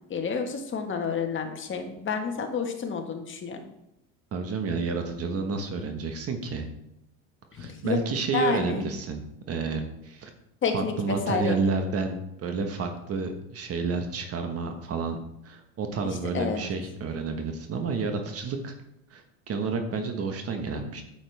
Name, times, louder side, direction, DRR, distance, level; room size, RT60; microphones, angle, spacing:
voice 1, 0.1-3.6 7.6-8.0 8.3-8.9 10.6-11.8 16.3-16.7, left 5 dB, 30° left, 4 dB, 1.6 m, -29 dB
voice 2, 4.3-6.7 7.6-9.2 9.5-10.3 10.7-15.2 15.4-18.7 19.1-21.0, right 4 dB, 40° right, 5 dB, 1.3 m, -30 dB
9.4 x 7.1 x 3.4 m, 0.84 s
supercardioid pair, 110°, 37 cm